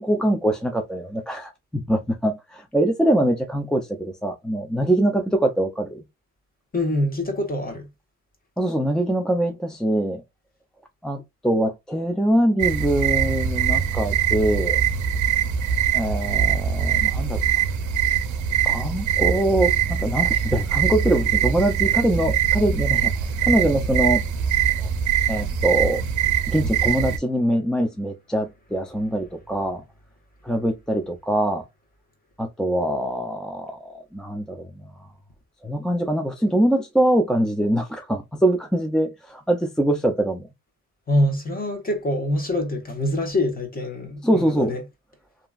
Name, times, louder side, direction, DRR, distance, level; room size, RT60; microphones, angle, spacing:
voice 1, 0.0-6.0 8.6-10.2 11.0-14.8 15.9-17.5 18.6-23.1 23.4-24.2 24.8-24.9 25.3-26.0 26.5-29.8 30.4-31.6 32.4-34.9 35.6-40.5 44.2-44.8, right 1 dB, ahead, 0.5 m, -23 dB
voice 2, 6.7-7.9 41.1-44.8, left 1 dB, 30° left, 1.3 m, -25 dB
sound 1, 12.6-27.2, right 8 dB, 75° right, 0.6 m, -22 dB
2.8 x 2.5 x 2.3 m
cardioid pair, 90°, 30 cm